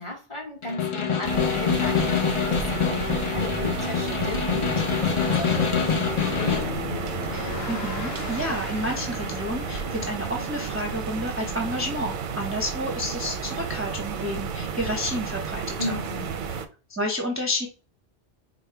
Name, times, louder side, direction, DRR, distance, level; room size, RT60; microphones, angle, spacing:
voice 1, 0.0-6.7 15.8-16.3, left 1 dB, 25° left, -2 dB, 1.4 m, -36 dB
Snare drum, 0.6-6.8, left 7 dB, 45° left, 0.4 m, -25 dB
sound 1, 1.2-16.7, right 6 dB, 55° right, 0.6 m, -32 dB
sound 2, 6.0-11.1, left 6 dB, 70° left, 0.9 m, -36 dB
voice 2, 7.3-15.9 16.9-17.7, equal, 15° right, 1 dB, 0.6 m, -30 dB
5.0 x 2.2 x 4.4 m, 0.34 s
omnidirectional pair, 1.1 m